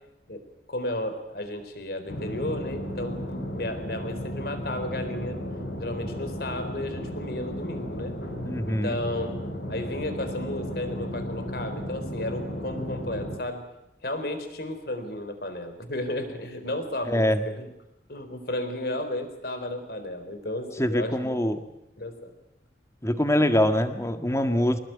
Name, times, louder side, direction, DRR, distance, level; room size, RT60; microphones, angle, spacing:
voice 1, 0.7-5.4 5.8-8.1 8.6-9.3 9.7-13.6 14.0-17.3 17.5-17.7 18.1-21.4 22.0-22.3, left 1 dB, 60° left, 8 dB, 4.1 m, -33 dB
sound 1, 2.1-13.4, equal, 80° left, 6.1 m, -34 dB
voice 2, 8.4-9.0 17.1-17.5 20.8-21.6 23.0-24.8, left 1 dB, 15° left, 7 dB, 1.7 m, -24 dB
25.5 x 20.0 x 9.2 m, 0.86 s
head